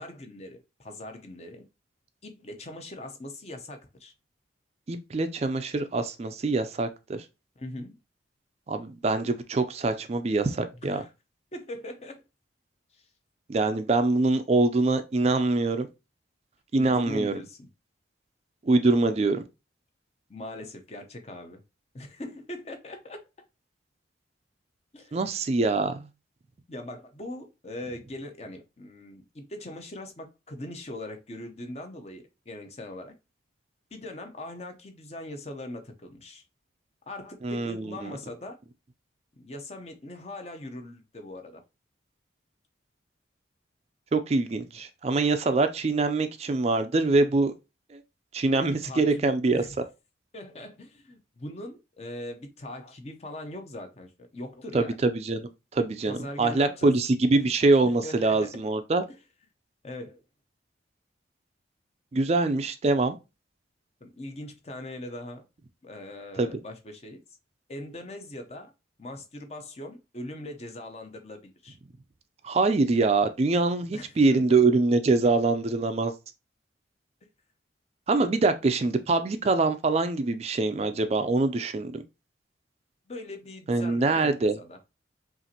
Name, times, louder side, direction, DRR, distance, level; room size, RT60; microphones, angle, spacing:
voice 1, 0.0-1.7 2.2-4.1 7.6-8.0 10.8-11.1 11.5-12.2 12.9-13.1 16.8-17.7 20.3-21.6 21.9-23.2 24.9-25.3 26.7-33.1 33.9-36.4 37.1-38.6 39.3-41.6 48.6-49.8 50.3-55.0 56.1-57.0 57.3-57.5 57.8-58.6 59.8-60.2 64.0-65.4 65.8-67.2 67.7-68.7 69.0-71.8 73.9-74.6 83.1-84.8, left 1 dB, 35° left, 0.7 m, -41 dB
voice 2, 4.9-7.2 8.7-11.0 13.5-15.9 16.7-17.4 18.6-19.4 25.1-25.9 37.4-38.1 44.1-47.5 47.9-48.0 48.3-49.6 54.7-59.0 62.1-63.2 66.4-66.5 72.4-76.1 78.1-82.0 83.7-84.6, right 3 dB, 35° right, 0.3 m, -24 dB
5.6 x 2.5 x 2.8 m
head